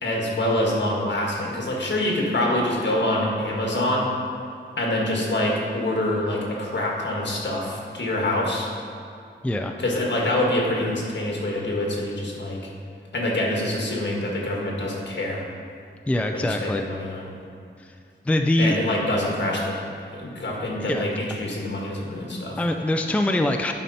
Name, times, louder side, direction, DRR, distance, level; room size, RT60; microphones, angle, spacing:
voice 1, 0.0-4.1 4.8-8.7 9.8-12.6 13.1-15.4 16.3-17.3 18.6-19.8 20.1-22.6, left 1 dB, 65° left, -2 dB, 1.7 m, -25 dB
voice 2, 9.4-9.8 16.1-16.8 17.8-17.9 18.2-18.8 20.8-21.0 22.6-23.7, left 1 dB, 5° left, 5 dB, 0.4 m, -23 dB
10.5 x 5.5 x 4.2 m, 2.4 s
wide cardioid pair, 105°, 19 cm